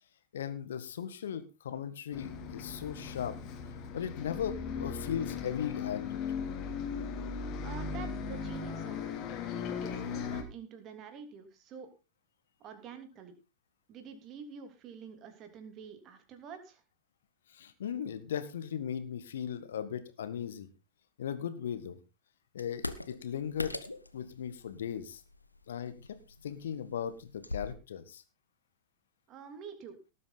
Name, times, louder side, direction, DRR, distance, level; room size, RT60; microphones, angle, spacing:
voice 1, 0.3-3.4 3.9-6.2 17.5-20.7 21.2-22.0 22.5-23.8 24.1-25.2 25.7-25.9 26.4-28.2, left 8 dB, 60° left, 11 dB, 1.8 m, -37 dB
Bus, 2.1-10.4, left 6 dB, 35° left, 2.9 m, -38 dB
voice 2, 7.6-9.1 9.8-11.9 12.6-13.3 13.9-16.8 29.3-30.0, right 6 dB, 35° right, 7 dB, 3.2 m, -47 dB
sound 1, 22.6-27.7, left 2 dB, 85° left, 1.1 m, -43 dB
18.5 x 8.6 x 4.1 m, 0.30 s
figure-of-eight pair, 90°, 0 cm